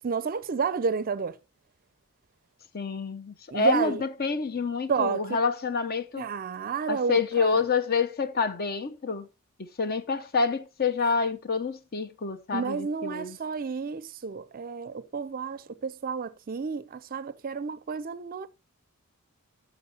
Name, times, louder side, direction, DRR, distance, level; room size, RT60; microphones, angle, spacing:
voice 1, 0.0-1.4 3.5-4.0 4.9-5.2 6.2-7.6 12.5-18.5, right 5 dB, 40° right, 0.5 m, -31 dB
voice 2, 2.7-6.3 6.9-9.3 9.6-13.4, left 4 dB, 45° left, 0.8 m, -28 dB
15.0 x 6.2 x 2.8 m
head